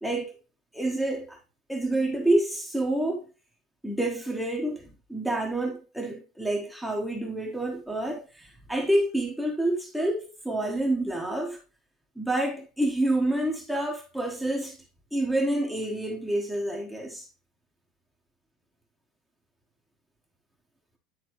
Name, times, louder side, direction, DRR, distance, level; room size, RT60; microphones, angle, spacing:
voice 1, 0.0-0.3 0.7-1.4 1.7-3.2 3.8-11.6 12.2-14.8 15.1-17.3, right 1 dB, ahead, 1.4 m, -28 dB
10.0 x 3.7 x 3.1 m
figure-of-eight pair, 75°, 2 cm